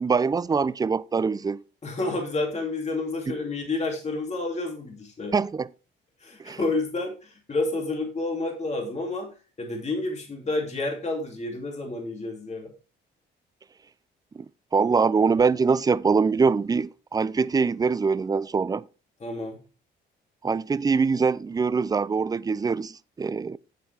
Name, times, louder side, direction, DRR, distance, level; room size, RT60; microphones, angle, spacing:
voice 1, 0.0-1.6 5.3-5.7 6.4-6.6 14.4-14.5 14.7-18.9 20.4-23.6, right 5 dB, 20° right, 0.4 m, -23 dB
voice 2, 1.8-5.3 6.2-9.3 9.6-12.7 19.2-19.6, left 2 dB, 35° left, 2.7 m, -30 dB
9.6 x 7.6 x 3.4 m
cardioid pair, 90°, 20 cm